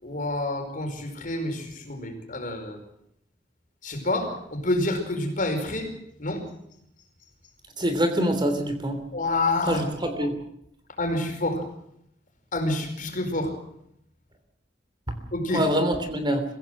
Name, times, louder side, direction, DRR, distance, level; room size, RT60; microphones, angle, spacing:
voice 1, 0.0-2.8 3.8-5.9 6.2-6.4 9.1-9.8 10.2-10.3 11.0-11.6 12.5-13.5 15.3-15.6, left 2 dB, 45° left, 4 dB, 5.0 m, -28 dB
voice 2, 7.8-9.0 9.7-10.3 15.1-15.2 15.5-16.4, equal, 25° right, 8 dB, 3.2 m, -25 dB
24.5 x 16.5 x 7.7 m, 0.76 s
head